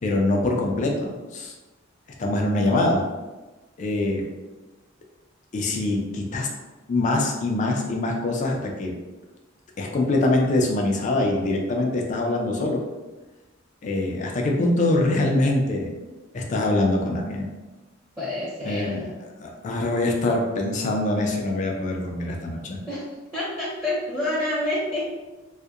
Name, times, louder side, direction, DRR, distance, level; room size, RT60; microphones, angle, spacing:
voice 1, 0.0-1.5 2.2-3.0 3.8-4.3 5.5-6.5 6.9-8.9 9.8-12.8 13.8-15.9 16.3-17.5 18.6-19.0 19.4-22.8, left 2 dB, 40° left, 1 dB, 0.3 m, -24 dB
voice 2, 18.2-19.0 22.9-23.0 23.3-25.2, left 1 dB, 10° right, -11 dB, 0.7 m, -28 dB
2.6 x 2.1 x 2.3 m, 1.2 s
head